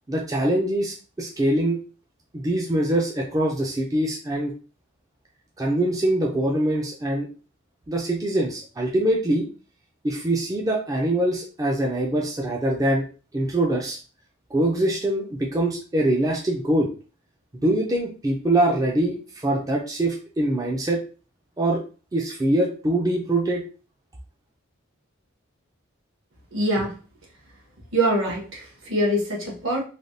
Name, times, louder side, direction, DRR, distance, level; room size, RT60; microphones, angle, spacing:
voice 1, 0.1-1.8 2.3-4.5 5.6-7.3 7.9-9.5 10.0-13.1 13.3-14.0 14.5-16.9 17.5-21.0 21.6-21.8 22.1-23.6, right 1 dB, 15° right, -1 dB, 0.4 m, -23 dB
voice 2, 26.5-27.0 27.9-29.8, right 1 dB, 65° right, -2 dB, 1.2 m, -24 dB
3.3 x 2.3 x 2.6 m, 0.36 s
head